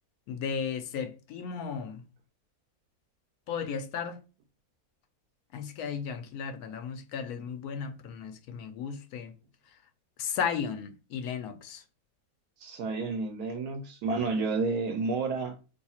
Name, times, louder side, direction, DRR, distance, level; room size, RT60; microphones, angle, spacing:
voice 1, 0.3-2.0 3.5-4.2 5.5-9.3 9.7-9.8 10.2-11.8, left 7 dB, 75° left, 1.0 m, -35 dB
voice 2, 12.6-15.6, right 3 dB, 80° right, 1.1 m, -30 dB
2.9 x 2.3 x 4.1 m
omnidirectional pair, 1.6 m